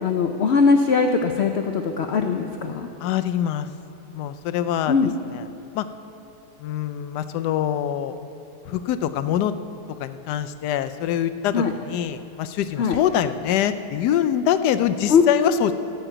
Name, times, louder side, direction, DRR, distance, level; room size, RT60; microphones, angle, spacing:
voice 1, 0.0-2.9 4.9-5.1 11.5-11.7 12.8-13.0 15.1-15.2, left 5 dB, 65° left, 5 dB, 0.6 m, -20 dB
voice 2, 3.0-3.7 4.1-4.9 5.3-5.4 5.7-5.9 6.6-8.2 8.7-9.5 10.0-15.7, left 10 dB, 80° left, 11 dB, 1.2 m, -24 dB
15.0 x 5.9 x 8.9 m, 2.8 s
omnidirectional pair, 1.8 m